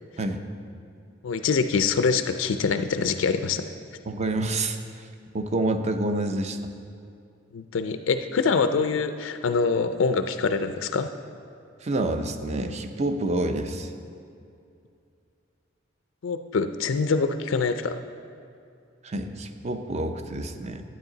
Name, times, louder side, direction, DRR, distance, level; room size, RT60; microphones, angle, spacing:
voice 1, 1.2-3.7 7.5-11.1 16.2-18.0, left 5 dB, 75° left, 9 dB, 0.4 m, -24 dB
voice 2, 4.1-4.8 5.3-6.6 11.8-13.9 19.0-20.8, right 2 dB, 35° right, 7 dB, 0.6 m, -28 dB
12.0 x 9.0 x 3.9 m, 2.5 s
head